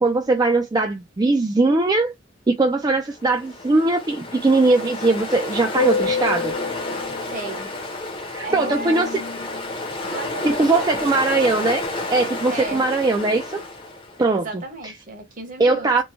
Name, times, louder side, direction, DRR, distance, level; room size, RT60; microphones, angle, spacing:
voice 1, 0.0-2.1 2.5-6.5 8.2-9.1 10.4-11.8 12.1-13.6 14.2-14.6 15.6-16.0, right 3 dB, 20° right, 0.3 m, -20 dB
Ocean, 3.2-14.3, left 3 dB, 25° left, 0.7 m, -29 dB
voice 2, 7.3-7.7 8.4-9.2 10.1-11.3 12.5-12.9 14.3-16.0, right 3 dB, 45° right, 1.0 m, -34 dB
3.0 x 2.1 x 2.6 m
head